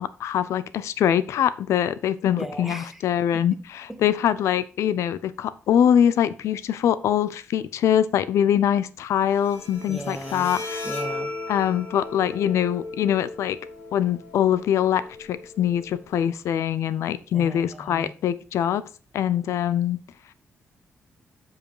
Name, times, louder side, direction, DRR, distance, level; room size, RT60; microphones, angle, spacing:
voice 1, 0.0-10.8 11.5-13.6 13.9-18.8 19.1-20.0, left 9 dB, 80° left, 0.5 m, -23 dB
voice 2, 2.4-3.0 3.3-3.4 3.9-4.0 9.9-10.5 10.8-11.3 17.3-18.1, right 1 dB, 5° right, 0.7 m, -36 dB
Bowed string instrument, 9.3-16.3, left 2 dB, 55° left, 3.5 m, -37 dB
7.9 x 4.8 x 4.7 m
wide cardioid pair, 175°, 5 cm